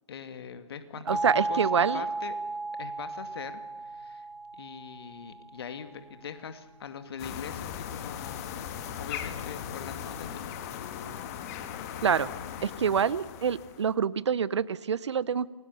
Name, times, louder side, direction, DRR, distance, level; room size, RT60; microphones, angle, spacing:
voice 1, 0.1-2.3 2.8-4.3 4.5-8.5 9.0-10.5, left 7 dB, 45° left, 9 dB, 2.3 m, -42 dB
voice 2, 1.1-2.0 12.0-12.3 12.6-15.5, right 7 dB, 55° right, 20 dB, 0.8 m, -26 dB
sound 1, 1.1-5.8, right 3 dB, 85° right, 2.7 m, -34 dB
sound 2, 7.2-13.9, left 9 dB, 30° left, 1.9 m, -38 dB
28.5 x 22.5 x 7.0 m, 1.3 s
figure-of-eight pair, 145°, 18 cm